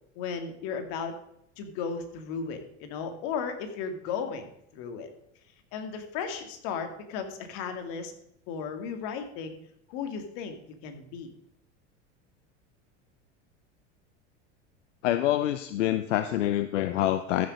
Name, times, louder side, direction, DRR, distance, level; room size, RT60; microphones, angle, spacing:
voice 1, 0.2-1.1 1.6-5.1 5.7-8.1 8.5-9.6 9.9-10.6 10.8-11.3, left 6 dB, 65° left, 6 dB, 2.2 m, -35 dB
voice 2, 15.0-17.5, left 13 dB, 85° left, 11 dB, 0.7 m, -26 dB
14.0 x 6.5 x 5.2 m, 0.75 s
hypercardioid pair, 95°, 36 cm